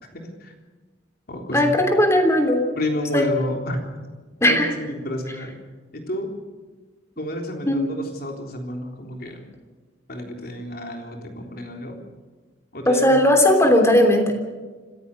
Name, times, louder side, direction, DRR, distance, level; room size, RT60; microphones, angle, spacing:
voice 1, 0.1-0.5 1.3-1.9 2.8-3.8 4.4-5.6 5.9-6.3 7.2-9.4 10.1-12.0 12.7-13.2, left 1 dB, 55° left, 2 dB, 3.7 m, -30 dB
voice 2, 1.5-2.7 3.1-3.3 4.4-4.7 7.7-7.9 12.9-14.3, left 1 dB, 15° left, 4 dB, 3.1 m, -17 dB
26.0 x 15.5 x 6.7 m, 1.4 s
head